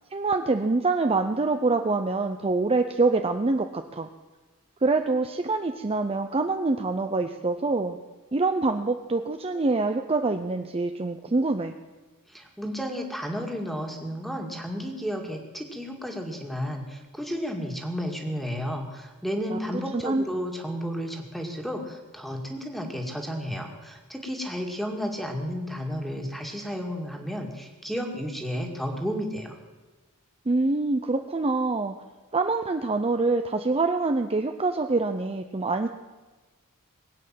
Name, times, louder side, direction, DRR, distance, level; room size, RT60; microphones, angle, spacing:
voice 1, 0.1-4.1 4.8-8.0 8.3-11.7 19.5-20.3 30.5-31.9 32.3-35.9, right 3 dB, 25° right, 6 dB, 0.6 m, -25 dB
voice 2, 12.3-29.5, equal, ahead, 3 dB, 2.1 m, -32 dB
21.0 x 8.9 x 7.6 m, 1.3 s
head